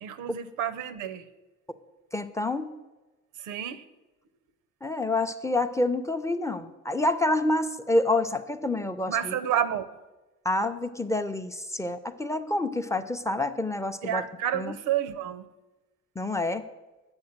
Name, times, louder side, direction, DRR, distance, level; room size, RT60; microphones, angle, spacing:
voice 1, 0.0-1.2 3.4-3.8 9.1-10.0 14.0-15.5, right 10 dB, 90° right, 13 dB, 0.6 m, -30 dB
voice 2, 2.1-2.7 4.8-9.4 10.4-14.2 14.5-14.8 16.2-16.7, left 2 dB, 10° left, 8 dB, 0.4 m, -28 dB
8.8 x 4.3 x 7.2 m, 1.1 s
cardioid pair, 90°, 30 cm